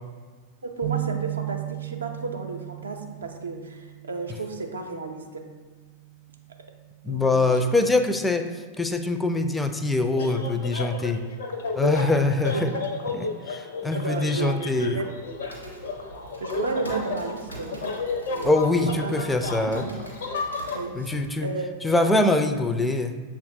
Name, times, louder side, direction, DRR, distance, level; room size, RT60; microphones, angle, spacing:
voice 1, 0.6-5.4 7.0-7.5 12.5-12.7 13.9-15.1 16.4-17.8 18.3-18.6 18.9-19.1 19.6-19.9 20.7-21.1 21.4-21.7, right 3 dB, 70° right, 3 dB, 0.5 m, -33 dB
sound 1, 0.8-7.1, right 17 dB, 40° right, 0.7 m, -36 dB
voice 2, 7.0-11.2 11.8-12.7 13.1-15.0 18.4-19.9 20.9-21.5 21.8-23.2, left 2 dB, 10° left, 7 dB, 0.3 m, -24 dB
sound 2, 10.2-20.8, left 4 dB, 65° left, 0.5 m, -32 dB
sound 3, 15.1-21.4, right 1 dB, 85° left, 1.0 m, -44 dB
6.7 x 2.4 x 2.7 m, 1.5 s
figure-of-eight pair, 90°, 0 cm